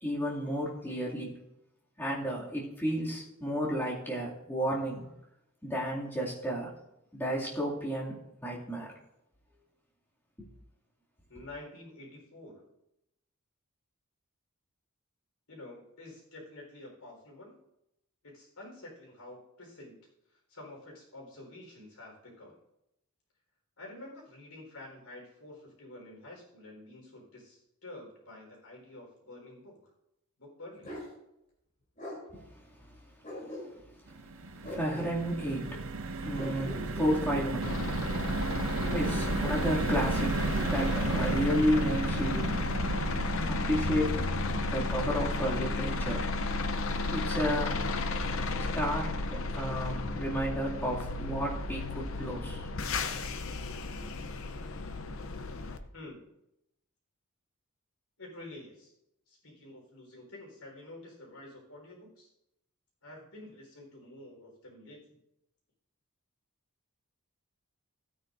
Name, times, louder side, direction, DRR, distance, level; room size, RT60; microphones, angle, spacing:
voice 1, 0.0-1.3 2.0-5.1 5.6-6.7 7.1-8.9 32.3-32.6 32.9-33.0 34.6-37.8 38.9-42.6 43.5-44.2 44.7-46.3 47.1-47.9 48.7-52.7 54.0-54.1, equal, 10° left, -5 dB, 2.5 m, -32 dB
voice 2, 11.3-12.7 15.5-17.5 18.2-19.9 20.5-22.6 23.8-29.8 30.4-30.9 55.9-56.3 58.2-58.9 59.3-62.3 63.0-65.2, left 2 dB, 90° left, -1 dB, 4.3 m, -49 dB
Bark, 30.8-31.1 32.0-32.2 33.2-34.0 34.6-35.1 36.3-37.5 38.7-39.6 40.5-41.4, left 1 dB, 35° left, 3.4 m, -42 dB
sound 1, 34.1-50.4 50.8-50.9 51.2-51.4, right 3 dB, 60° right, 0.6 m, -35 dB
sound 2, 37.6-55.8, left 2 dB, 65° left, 0.7 m, -33 dB
16.0 x 9.3 x 2.6 m, 0.85 s
head